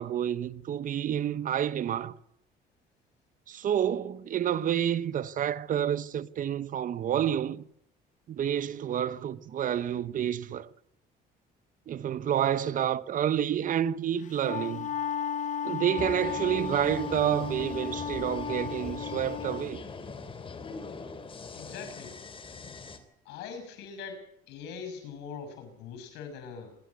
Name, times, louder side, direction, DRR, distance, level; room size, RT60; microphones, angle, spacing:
voice 1, 0.0-2.1 3.5-7.6 8.3-10.7 11.9-14.9 15.6-19.8, right 10 dB, 50° right, 1.1 m, -29 dB
Wind instrument woodwind instrument, 14.2-19.7, left 7 dB, 50° left, 1.4 m, -34 dB
sound 1, 16.0-23.0, left 4 dB, 30° left, 3.3 m, -41 dB
voice 2, 21.5-22.2 23.2-26.8, left 6 dB, 90° left, 6.4 m, -42 dB
27.0 x 11.5 x 9.7 m
cardioid pair, 110°, 17 cm